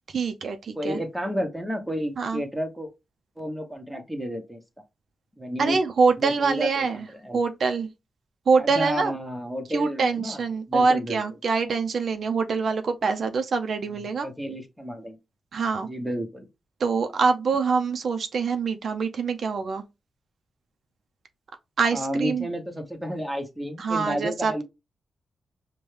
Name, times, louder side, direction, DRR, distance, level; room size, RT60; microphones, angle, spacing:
voice 1, 0.1-1.0 2.2-2.4 5.6-7.1 7.3-7.9 8.5-9.2 9.7-14.3 15.5-15.9 16.8-19.8 21.8-22.5 23.8-24.6, right 5 dB, 65° right, 0.5 m, -24 dB
voice 2, 0.8-2.9 3.4-4.6 5.4-5.8 6.2-7.4 8.6-11.2 14.2-15.2 15.8-16.5 21.9-24.6, equal, 5° right, 1.0 m, -31 dB
5.3 x 2.2 x 3.2 m
cardioid pair, 100°, 0 cm